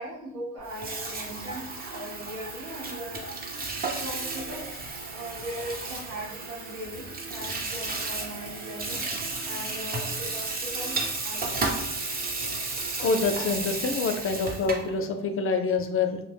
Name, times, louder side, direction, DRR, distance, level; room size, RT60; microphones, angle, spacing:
voice 1, 0.0-3.4 3.9-4.8 5.1-11.8 12.5-12.6, equal, 90° right, -4 dB, 1.0 m, -39 dB
Water tap faucet / Sink (filling or washing), 0.6-14.9, right 3 dB, 30° right, 0.5 m, -33 dB
sound 1, 1.5-13.5, right 2 dB, 55° right, 0.8 m, -47 dB
voice 2, 13.0-16.2, left 4 dB, 45° left, 7 dB, 0.4 m, -26 dB
2.8 x 2.0 x 3.3 m, 0.81 s
cardioid pair, 90°, 30 cm